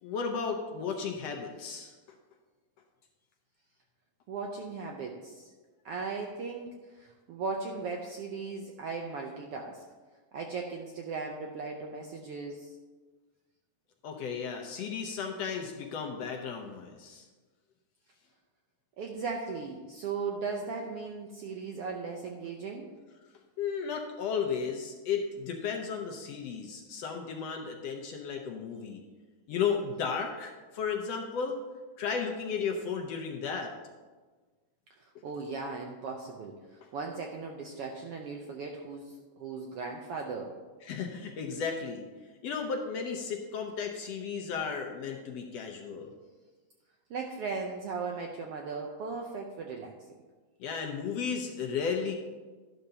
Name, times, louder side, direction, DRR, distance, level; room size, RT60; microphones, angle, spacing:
voice 1, 0.0-1.9 14.0-17.3 23.6-29.0 29.5-31.6 32.0-33.7 36.8-36.9 40.8-42.1 42.4-46.1 50.6-52.2, left 6 dB, 70° left, 3 dB, 1.7 m, -34 dB
voice 2, 4.3-5.5 5.8-9.8 10.3-12.8 19.0-22.9 35.2-40.5 47.1-49.9, right 4 dB, 75° right, 1 dB, 1.4 m, -37 dB
12.5 x 11.5 x 2.8 m, 1.3 s
omnidirectional pair, 3.5 m